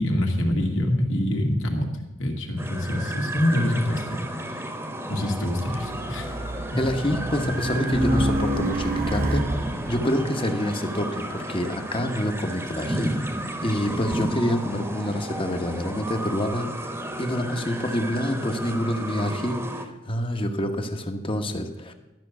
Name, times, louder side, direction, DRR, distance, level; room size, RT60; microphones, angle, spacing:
voice 1, 0.0-1.9 2.2-4.3 5.1-6.4 6.7-6.9, left 1 dB, 80° left, 2 dB, 2.1 m, -25 dB
sound 1, 2.6-19.9, right 1 dB, 15° right, 1.1 m, -33 dB
Race car auto racing, 5.6-10.0, right 1 dB, 50° right, 0.9 m, -27 dB
voice 2, 6.8-13.1 13.6-21.9, left 1 dB, 30° left, 6 dB, 1.1 m, -27 dB
12.5 x 5.9 x 8.1 m, 1.0 s
head